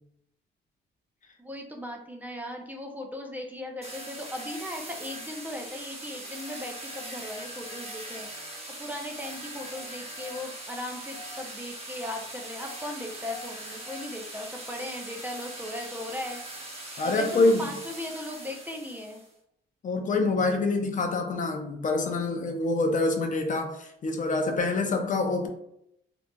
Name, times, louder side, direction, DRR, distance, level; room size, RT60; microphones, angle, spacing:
voice 1, 1.4-8.5 8.8-16.6 17.0-19.2, left 1 dB, 10° right, 1 dB, 0.5 m, -38 dB
sound 1, 3.8-19.3, right 1 dB, 30° right, 0.8 m, -41 dB
voice 2, 17.0-17.8 19.8-25.5, left 3 dB, 40° left, 4 dB, 0.5 m, -26 dB
2.8 x 2.5 x 2.2 m, 0.75 s
cardioid pair, 90°, 20 cm